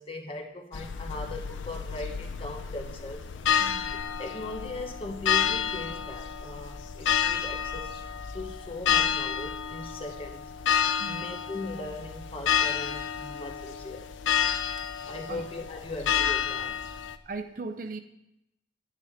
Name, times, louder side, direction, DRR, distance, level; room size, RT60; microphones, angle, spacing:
voice 1, 0.0-3.3 3.9-8.0 8.3-10.5 11.1-14.1 15.0-16.8, left 2 dB, 30° left, 3 dB, 1.0 m, -39 dB
sound 1, 0.7-17.2, left 8 dB, 85° left, 0.5 m, -30 dB
voice 2, 17.3-18.0, right 3 dB, 45° right, 8 dB, 0.5 m, -38 dB
10.0 x 10.0 x 3.6 m, 0.87 s
head